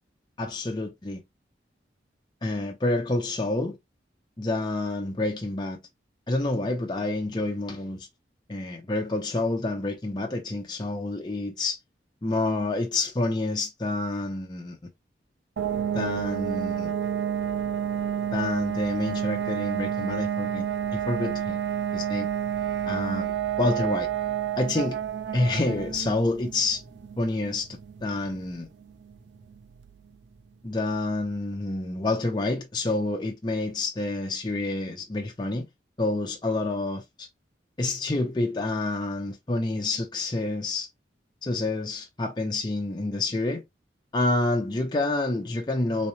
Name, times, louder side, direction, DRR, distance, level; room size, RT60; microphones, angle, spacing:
voice 1, 0.4-1.2 2.4-3.8 4.4-5.8 6.3-8.1 8.5-11.8 12.2-14.9 15.9-16.9 18.3-20.7 20.9-21.6 21.9-22.3 22.9-24.1 24.6-25.0 25.3-26.8 27.2-28.7 30.6-35.7 36.0-37.3 37.8-40.9 41.4-43.6 44.1-46.1, left 2 dB, 25° left, 0.5 m, -28 dB
sound 1, 15.6-30.1, right 9 dB, 70° right, 0.4 m, -30 dB
3.5 x 3.1 x 2.7 m
head